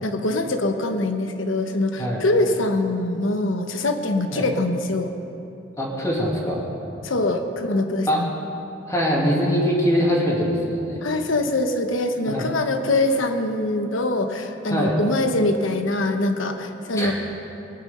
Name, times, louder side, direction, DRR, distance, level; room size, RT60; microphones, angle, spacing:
voice 1, 0.0-5.1 7.0-8.3 11.0-17.1, left 2 dB, 75° left, 6 dB, 1.1 m, -23 dB
voice 2, 5.8-6.7 8.1-8.2 8.9-11.0 12.3-12.5 14.7-15.0 17.0-17.1, equal, 15° left, -4 dB, 2.2 m, -22 dB
20.0 x 9.6 x 5.5 m, 3.0 s
head